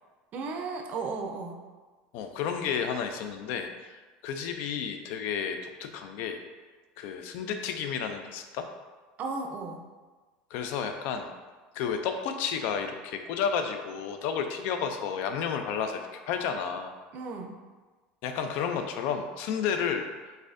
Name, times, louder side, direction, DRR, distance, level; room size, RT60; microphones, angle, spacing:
voice 1, 0.3-1.6 9.2-9.8 17.1-17.5, right 4 dB, 45° right, 3 dB, 0.5 m, -35 dB
voice 2, 2.1-6.4 7.0-8.7 10.5-11.3 11.7-16.9 18.2-20.4, left 7 dB, 65° left, 6 dB, 0.4 m, -32 dB
4.0 x 2.6 x 2.5 m, 1.3 s
supercardioid pair, 110°, 4 cm